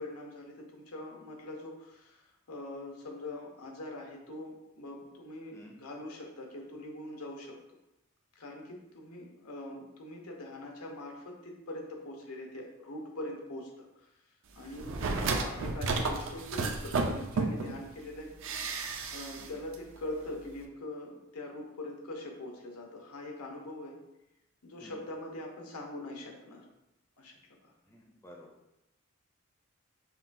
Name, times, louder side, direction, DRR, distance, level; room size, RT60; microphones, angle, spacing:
voice 1, 0.0-7.6 8.4-14.1 14.5-18.3 19.1-24.0 24.6-26.7 27.2-27.7, left 1 dB, 85° left, 1 dB, 0.8 m, -43 dB
sound 1, 14.8-17.8 18.4-19.5 19.7-19.8, right 3 dB, 60° right, 0.4 m, -32 dB
voice 2, 27.9-28.5, left 1 dB, 10° left, -2 dB, 0.4 m, -50 dB
5.6 x 2.2 x 2.5 m, 0.89 s
head